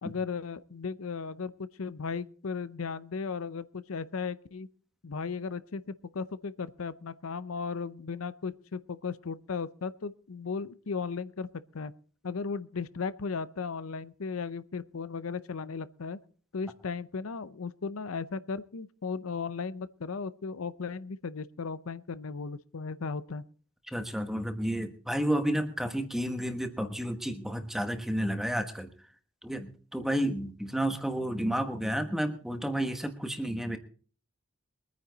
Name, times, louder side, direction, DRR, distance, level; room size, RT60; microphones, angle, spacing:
voice 1, 0.0-4.7 5.0-11.5 11.7-11.9 12.2-16.2 16.5-23.4, left 5 dB, 90° left, 0.7 m, -36 dB
voice 2, 23.9-28.9 29.4-33.8, right 1 dB, ahead, 1.2 m, -31 dB
23.0 x 9.5 x 4.0 m
head